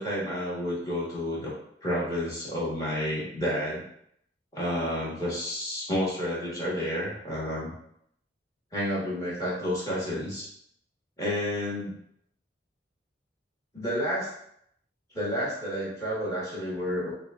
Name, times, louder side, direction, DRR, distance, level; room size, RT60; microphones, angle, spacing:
voice 1, 0.0-1.5 1.8-3.8 4.5-7.7 8.7-10.5 11.2-12.0 13.7-14.3 15.1-17.1, equal, 20° left, -7 dB, 1.7 m, -30 dB
6.5 x 2.5 x 2.6 m, 0.71 s
head